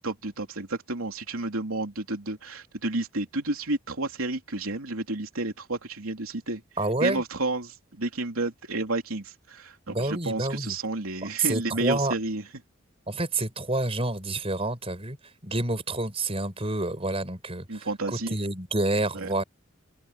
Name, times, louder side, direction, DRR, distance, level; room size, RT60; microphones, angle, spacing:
voice 1, 0.0-6.6 7.0-12.5 17.7-18.4 19.1-19.3, right 2 dB, 85° right, 3.3 m, -31 dB
voice 2, 6.8-7.2 9.9-10.7 11.4-12.1 13.1-15.2 15.4-17.9 18.3-19.4, right 2 dB, 30° right, 5.6 m, -28 dB
head